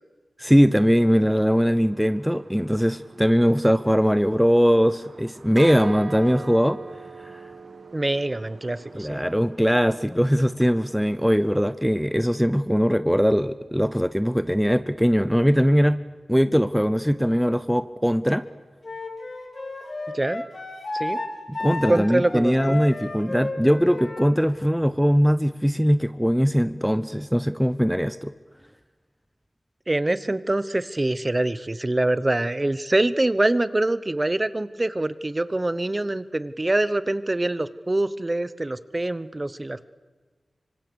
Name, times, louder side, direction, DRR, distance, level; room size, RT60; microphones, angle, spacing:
voice 1, 0.4-6.8 7.2-7.4 8.9-16.0 16.3-18.4 21.5-28.3, equal, ahead, 13 dB, 0.7 m, -21 dB
sound 1, 0.7-12.3, right 4 dB, 70° right, 1.7 m, -43 dB
voice 2, 7.9-9.2 20.1-20.4 20.9-21.2 21.9-22.8 29.9-39.9, right 2 dB, 25° right, 15 dB, 1.0 m, -24 dB
Wind instrument woodwind instrument, 18.8-24.3, left 2 dB, 50° left, 4.4 m, -32 dB
25.5 x 25.0 x 7.0 m, 1.4 s
wide cardioid pair, 80°, 0 cm